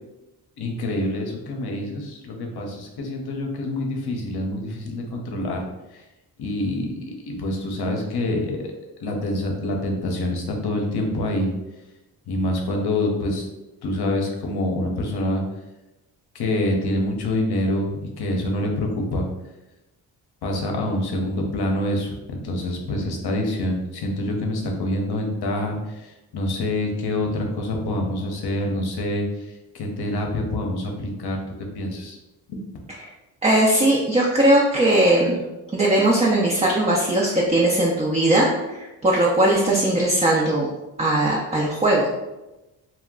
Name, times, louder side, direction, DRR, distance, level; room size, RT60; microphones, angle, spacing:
voice 1, 0.6-5.6 5.9-6.0 6.4-8.7 9.0-11.5 12.3-13.5 13.8-15.4 16.3-19.3 20.4-29.5 29.7-31.4 31.7-32.2 32.5-32.6, left 1 dB, 55° left, 1 dB, 0.8 m, -26 dB
voice 2, 33.4-35.4 35.7-40.7 41.0-42.1, right 1 dB, 15° right, -3 dB, 0.5 m, -19 dB
2.2 x 2.1 x 3.6 m, 1.0 s
supercardioid pair, 45°, 45 cm